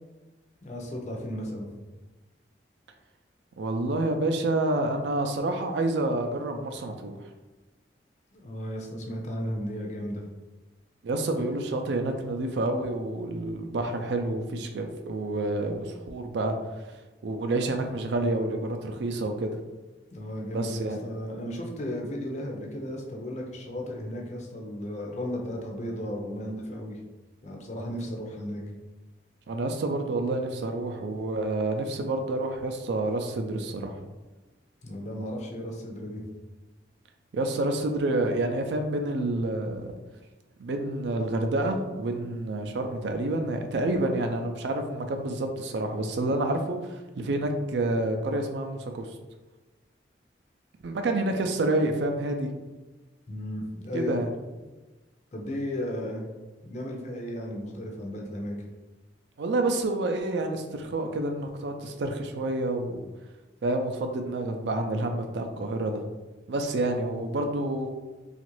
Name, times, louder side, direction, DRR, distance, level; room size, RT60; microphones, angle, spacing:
voice 1, 0.6-1.7 8.3-10.2 20.1-27.0 27.4-28.6 34.8-36.2 53.3-54.2 55.3-56.3 56.6-58.5, equal, 40° left, 0 dB, 0.5 m, -35 dB
voice 2, 3.6-7.2 11.0-16.5 17.2-19.6 20.5-21.0 29.5-34.0 37.3-39.9 40.6-49.1 50.8-52.5 53.9-54.3 59.4-63.1 63.6-66.0 66.5-67.9, right 2 dB, 70° right, 4 dB, 0.4 m, -28 dB
2.9 x 2.4 x 3.0 m, 1.2 s
head